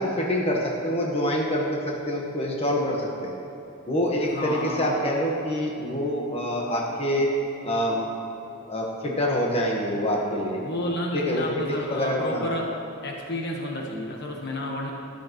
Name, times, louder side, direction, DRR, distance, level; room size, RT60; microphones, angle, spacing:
voice 1, 0.0-3.3 3.9-7.3 7.6-8.1 8.7-10.6 11.1-12.5, equal, 30° left, -2 dB, 1.3 m, -26 dB
voice 2, 4.3-5.0 10.6-12.7 13.0-14.9, left 1 dB, 50° left, 0 dB, 1.3 m, -31 dB
13.0 x 12.0 x 3.1 m, 3.0 s
head